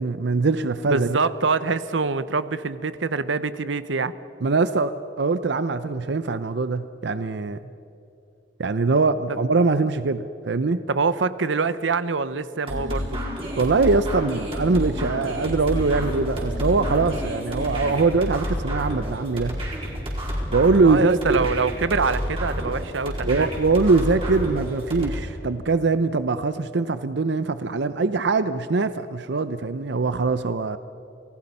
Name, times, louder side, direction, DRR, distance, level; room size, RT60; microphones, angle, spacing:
voice 1, 0.0-1.2 4.4-7.6 8.6-10.8 13.6-19.6 20.5-21.4 23.3-30.8, right 3 dB, 65° right, 12 dB, 0.6 m, -22 dB
voice 2, 0.9-4.1 10.9-13.2 20.8-23.5, right 4 dB, 90° right, 14 dB, 0.8 m, -25 dB
sound 1, 12.7-25.1, equal, 30° right, 4.8 m, -29 dB
28.5 x 19.0 x 5.5 m, 2.8 s
head